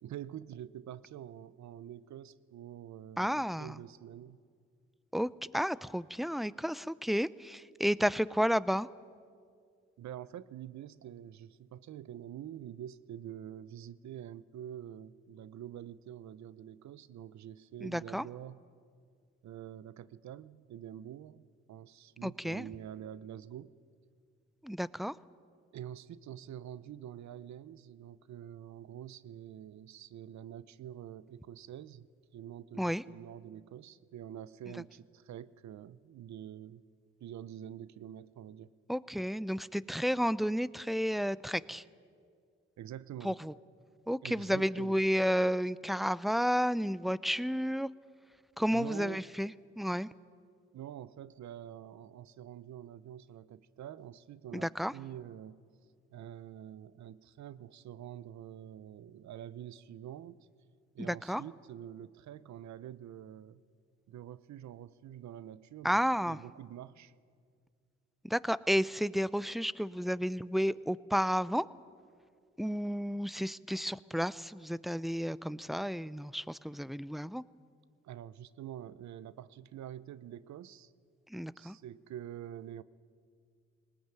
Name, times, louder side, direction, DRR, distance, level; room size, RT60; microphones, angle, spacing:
voice 1, 0.0-4.4 10.0-18.6 19.4-23.7 25.7-32.1 32.3-36.8 37.2-38.7 42.8-43.4 44.2-45.0 48.7-49.3 50.7-55.6 56.1-60.5 60.9-63.6 64.1-67.1 78.0-80.9 81.6-82.8, right 11 dB, 70° right, 18 dB, 0.7 m, -46 dB
voice 2, 3.2-3.7 5.1-8.9 17.8-18.3 22.2-22.6 24.6-25.1 32.8-33.0 38.9-41.8 43.2-43.5 44.1-47.9 48.6-50.1 54.5-54.9 61.1-61.4 65.8-66.4 68.2-71.7 72.6-77.4 81.3-81.8, equal, ahead, 19 dB, 0.6 m, -32 dB
19.5 x 19.5 x 9.1 m, 2.1 s
supercardioid pair, 45°, 29 cm